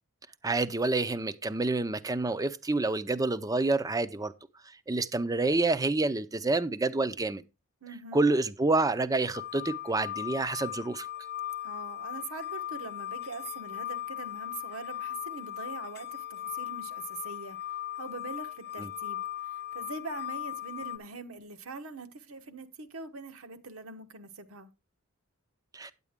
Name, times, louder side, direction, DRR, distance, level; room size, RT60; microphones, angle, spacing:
voice 1, 0.4-4.3 4.9-7.4 8.1-11.1 18.8-18.9 25.7-25.9, right 2 dB, 15° right, 0.5 m, -28 dB
voice 2, 7.8-8.2 11.6-17.6 17.9-24.7, right 3 dB, 75° right, 1.2 m, -43 dB
sound 1, 9.3-21.0, left 12 dB, 50° left, 0.6 m, -38 dB
9.6 x 8.3 x 3.6 m
head